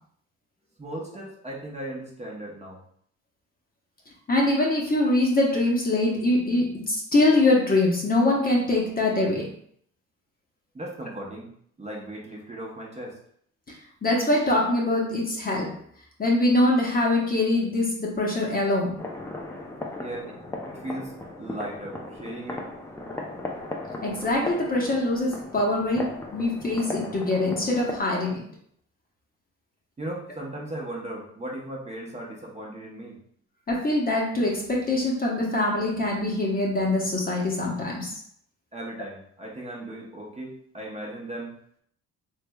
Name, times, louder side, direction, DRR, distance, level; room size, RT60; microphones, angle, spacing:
voice 1, 0.8-2.8 10.7-11.5 11.8-13.2 20.0-20.3 20.7-21.1 21.4-22.7 30.0-33.2 38.7-41.5, right 1 dB, 20° right, -2 dB, 0.8 m, -37 dB
voice 2, 4.3-9.5 13.7-13.8 14.0-15.7 16.2-18.9 24.0-28.4 33.7-38.1, left 2 dB, 30° left, -1 dB, 0.8 m, -23 dB
sound 1, 19.0-28.0, left 2 dB, 10° left, 0.5 m, -37 dB
3.2 x 3.2 x 2.2 m, 0.65 s
cardioid pair, 90°, 30 cm